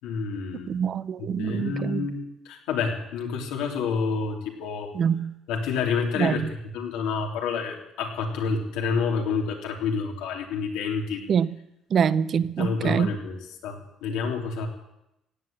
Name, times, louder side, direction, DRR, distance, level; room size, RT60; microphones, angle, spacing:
voice 1, 0.0-0.8 1.2-4.9 5.5-6.4 6.7-11.2 12.6-13.4 13.6-14.7, left 5 dB, 90° left, 1 dB, 3.0 m, -28 dB
voice 2, 0.7-2.1 4.9-5.3 6.2-6.5 11.3-11.5 11.9-13.2, right 7 dB, 50° right, 16 dB, 0.6 m, -25 dB
16.5 x 8.7 x 8.9 m, 0.87 s
cardioid pair, 105°, 0 cm